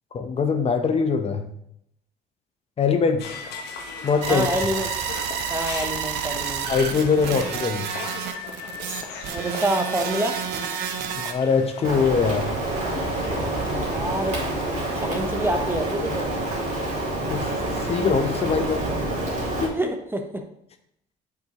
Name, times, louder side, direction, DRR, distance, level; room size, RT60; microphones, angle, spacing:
voice 1, 0.1-1.5 2.8-3.2 4.0-4.5 6.7-7.9 11.1-12.5 17.3-17.5 17.9-18.9 19.6-19.8, left 5 dB, 35° left, 7 dB, 0.7 m, -22 dB
sound 1, 3.2-15.2, left 5 dB, 85° left, 1.2 m, -38 dB
Raw Data - Pulse Modulator, 4.2-11.3, right 8 dB, 85° right, 0.7 m, -30 dB
voice 2, 4.3-4.9 5.5-6.7 9.3-10.4 13.7-14.4 15.0-16.3 19.7-20.4, right 1 dB, 15° right, 6 dB, 0.8 m, -27 dB
Rain, 11.8-19.7, right 1 dB, 50° right, 2.8 m, -27 dB
7.5 x 5.8 x 2.9 m, 0.74 s
cardioid pair, 110°, 17 cm